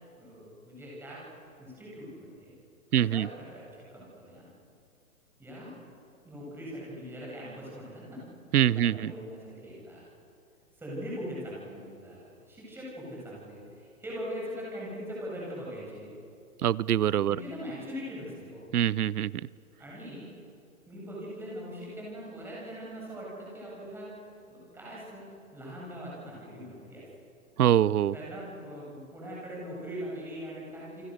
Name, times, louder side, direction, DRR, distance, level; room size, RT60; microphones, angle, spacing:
voice 1, 0.2-1.2 1.6-2.5 2.9-4.4 5.4-5.8 6.2-8.3 8.5-10.1 10.8-16.2 17.3-18.6 19.8-20.3 20.9-24.1 24.5-25.3 25.5-27.0 28.1-31.1, equal, 5° right, -5 dB, 8.0 m, -41 dB
voice 2, 2.9-3.3 8.5-9.1 16.6-17.4 18.7-19.3 27.6-28.1, right 11 dB, 80° right, 22 dB, 0.8 m, -24 dB
29.5 x 24.5 x 6.6 m, 2.6 s
hypercardioid pair, 155°, 45 cm